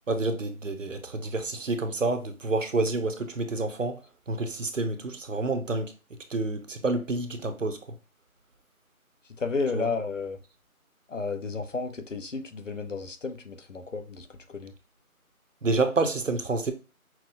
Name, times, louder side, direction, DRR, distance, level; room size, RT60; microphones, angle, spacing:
voice 1, 0.1-4.0 4.3-5.9 6.3-7.8 9.7-9.9 15.6-16.7, right 3 dB, 60° right, 0.7 m, -28 dB
voice 2, 9.4-10.4 11.1-14.7, left 4 dB, 60° left, 0.7 m, -32 dB
5.8 x 2.1 x 2.5 m
figure-of-eight pair, 175°, 43 cm